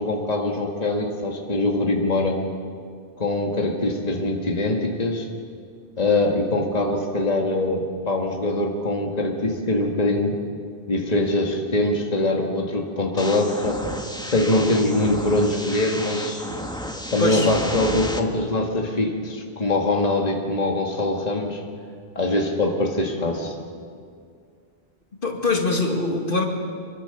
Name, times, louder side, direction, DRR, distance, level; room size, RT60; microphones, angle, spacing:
voice 1, 0.0-2.4 3.2-5.3 6.0-10.4 10.9-13.8 14.2-16.5 17.1-21.6 22.2-23.5, left 2 dB, 40° left, 1 dB, 2.1 m, -23 dB
sound 1, 13.2-18.2, equal, 5° left, 1.5 m, -32 dB
voice 2, 25.2-26.5, left 2 dB, 60° left, 2 dB, 2.4 m, -23 dB
25.5 x 23.5 x 7.0 m, 2.2 s
omnidirectional pair, 1.0 m